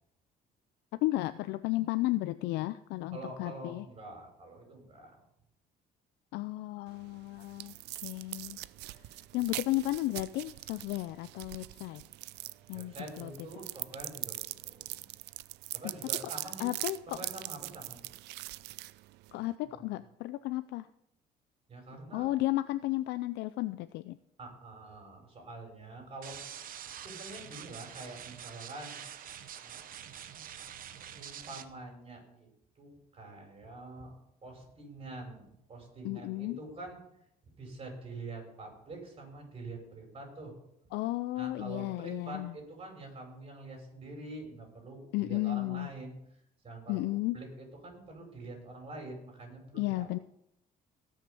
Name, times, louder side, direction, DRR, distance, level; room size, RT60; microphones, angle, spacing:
voice 1, 1.0-3.8 6.3-7.7 8.0-8.6 9.3-12.0 12.7-13.3 16.6-17.0 19.3-20.9 22.1-24.2 36.0-36.6 40.9-42.5 45.1-45.9 46.9-47.4 49.7-50.2, left 17 dB, 85° left, 12 dB, 0.5 m, -33 dB
voice 2, 3.1-5.2 8.8-9.2 12.4-15.0 15.7-16.7 17.1-18.1 19.7-19.8 21.7-22.3 24.4-26.4 26.8-29.0 29.6-30.2 31.0-32.5 32.8-34.1 34.4-37.0 37.6-40.5 41.4-46.1 46.6-47.0 47.3-50.2, right 2 dB, 35° right, 1 dB, 6.0 m, -46 dB
sound 1, 6.9-19.5, right 18 dB, 85° right, 0.4 m, -42 dB
sound 2, 26.2-31.6, right 9 dB, 55° right, 1.0 m, -46 dB
18.0 x 6.4 x 5.4 m, 0.78 s
cardioid pair, 110°, 17 cm